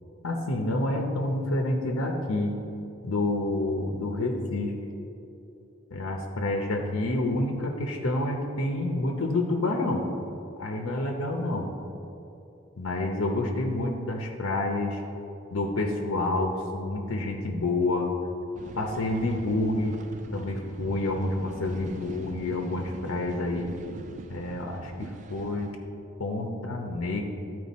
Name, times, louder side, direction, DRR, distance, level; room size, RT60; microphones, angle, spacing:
voice 1, 0.2-2.6 3.0-4.8 5.9-10.0 10.6-11.7 12.8-15.0 15.5-18.1 18.7-20.0 20.3-23.8 24.3-25.7 26.2-27.2, left 2 dB, 90° left, 2 dB, 0.8 m, -28 dB
sound 1, 18.5-25.7, right 3 dB, 35° right, 0.3 m, -42 dB
12.0 x 4.7 x 4.1 m, 2.9 s
head